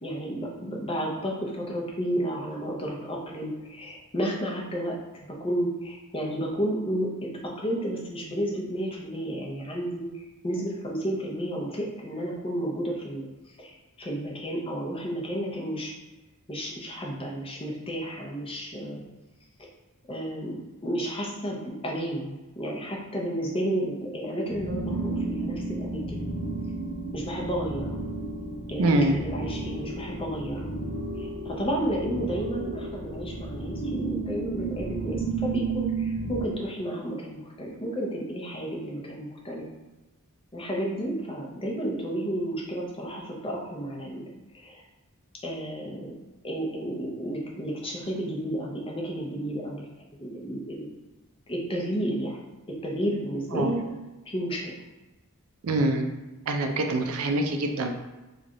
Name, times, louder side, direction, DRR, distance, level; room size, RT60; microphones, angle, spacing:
voice 1, 0.0-4.9 5.3-7.1 7.6-10.1 10.4-13.3 13.6-15.9 16.5-19.0 20.1-26.2 27.1-28.0 28.7-30.7 31.2-39.6 40.5-44.3 44.5-44.8 45.4-46.1 46.4-49.9 50.2-50.9 51.5-52.4 52.8-53.8 54.2-54.7, right 1 dB, 25° left, -2 dB, 0.7 m, -32 dB
sound 1, 24.5-36.5, right 3 dB, 40° left, 1.3 m, -32 dB
voice 2, 28.8-29.2 53.5-53.8 55.6-56.1 56.5-57.9, right 2 dB, 65° right, 5 dB, 0.4 m, -24 dB
3.1 x 2.4 x 3.9 m, 1.1 s
head